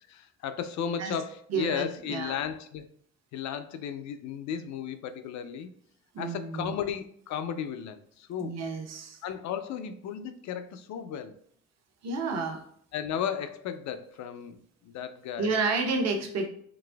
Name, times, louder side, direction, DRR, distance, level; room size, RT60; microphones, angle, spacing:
voice 1, 0.1-2.9 3.3-5.7 6.2-8.6 9.2-11.4 12.9-14.6 14.8-15.6, left 8 dB, 65° left, 0.4 m, -34 dB
voice 2, 1.5-2.4 6.1-6.7 8.4-9.2 12.0-12.6 15.4-16.5, right 4 dB, 60° right, 0.7 m, -30 dB
4.0 x 2.5 x 2.2 m
cardioid pair, 90°, 30 cm